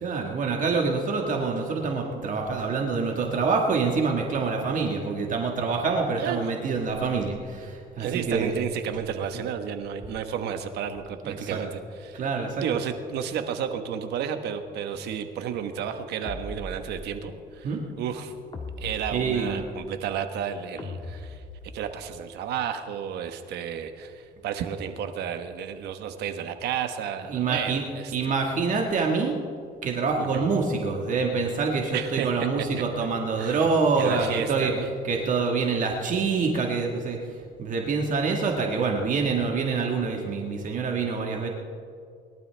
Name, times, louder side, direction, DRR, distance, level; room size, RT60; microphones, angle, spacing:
voice 1, 0.0-8.5 11.2-11.6 12.1-12.6 17.6-17.8 19.1-19.6 27.3-27.8 28.1-29.4 29.8-34.7 35.0-41.5, right 4 dB, 50° right, 1 dB, 1.6 m, -26 dB
voice 2, 8.0-12.2 12.6-17.7 18.0-18.3 18.8-21.4 21.7-28.1 30.2-30.5 31.9-32.7 33.4-33.6 34.0-34.9, right 8 dB, 75° right, 8 dB, 1.3 m, -32 dB
sound 1, 16.2-17.3 18.5-19.8 20.8-22.0, left 2 dB, 30° left, 1.9 m, -39 dB
22.0 x 12.0 x 3.4 m, 2.4 s
cardioid pair, 110°, 17 cm